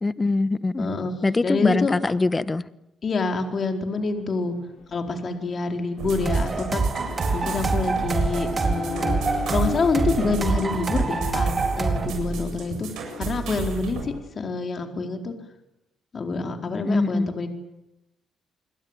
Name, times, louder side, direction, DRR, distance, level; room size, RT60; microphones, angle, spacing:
voice 1, 0.0-0.9 1.2-2.6 16.8-17.3, left 3 dB, 20° left, 15 dB, 1.3 m, -23 dB
voice 2, 0.8-1.1 1.4-1.9 3.0-4.6 4.9-6.8 7.3-9.2 9.5-12.9 13.2-15.3 16.1-17.5, left 4 dB, 45° left, 5 dB, 4.5 m, -27 dB
Accelerating revving vroom, 3.9-14.3, left 6 dB, 75° left, 5.7 m, -40 dB
sound 1, 6.0-14.0, right 5 dB, 75° right, 7.8 m, -33 dB
sound 2, 6.3-12.1, right 3 dB, 35° right, 4.3 m, -25 dB
29.5 x 21.5 x 9.2 m, 0.91 s
cardioid pair, 90°, 0 cm